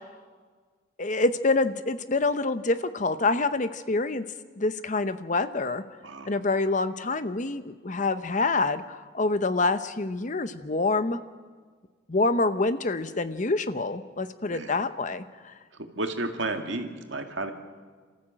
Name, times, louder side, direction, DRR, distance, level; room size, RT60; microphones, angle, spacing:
voice 1, 1.0-4.2 4.6-5.8 6.3-11.2 12.1-15.5, left 3 dB, 40° left, 12 dB, 0.9 m, -26 dB
voice 2, 16.0-17.5, right 2 dB, 70° right, 5 dB, 2.0 m, -32 dB
27.5 x 14.0 x 7.7 m, 1.5 s
head